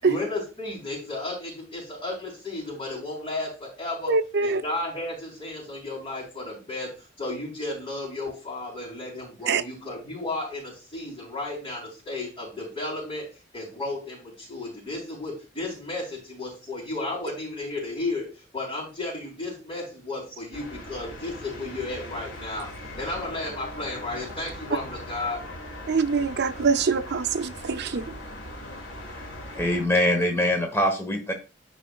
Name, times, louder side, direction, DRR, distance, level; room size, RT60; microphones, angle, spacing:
voice 1, 0.0-4.1 4.4-13.3 13.5-22.7 22.9-25.4, left 2 dB, 30° left, 3.8 m, -33 dB
voice 2, 4.1-4.6 9.5-9.6 25.9-28.0, right 5 dB, 60° right, 0.5 m, -24 dB
sound 1, 20.5-29.9, left 1 dB, 75° left, 2.0 m, -40 dB
voice 3, 29.5-31.3, left 1 dB, 15° left, 1.1 m, -23 dB
13.0 x 5.1 x 2.4 m
head